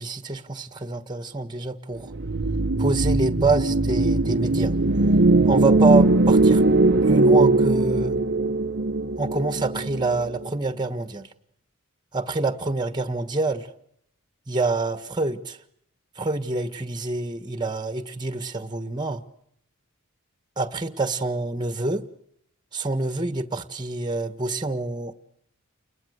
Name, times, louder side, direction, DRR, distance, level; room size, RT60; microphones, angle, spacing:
voice 1, 0.0-2.1 2.8-4.7 5.4-6.6 7.1-8.2 9.2-11.3 12.1-13.7 14.5-15.6 16.2-19.2 20.6-22.1 22.7-25.1, right 3 dB, 20° right, 1.6 m, -26 dB
sound 1, 2.1-10.5, right 2 dB, 50° right, 1.0 m, -20 dB
29.5 x 21.5 x 8.1 m
head